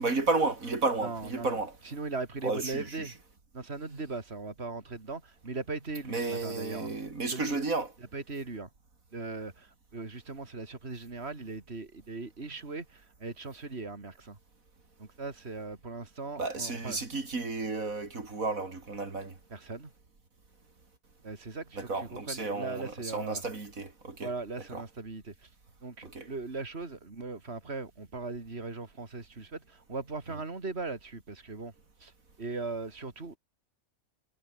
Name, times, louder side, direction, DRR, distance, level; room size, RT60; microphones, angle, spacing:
voice 1, 0.0-1.8 2.4-3.1 6.1-7.9 16.4-19.4 21.8-24.3 24.7-24.8 26.0-26.3, right 3 dB, 70° right, 3.6 m, -32 dB
voice 2, 1.0-1.6 1.8-3.1 3.5-6.9 7.2-7.6 8.1-8.7 9.1-14.4 15.0-17.0 19.5-19.9 21.2-23.4 24.2-25.5 25.8-31.7 32.0-32.1 32.4-33.4, right 3 dB, 45° right, 3.4 m, -39 dB
omnidirectional pair, 1.5 m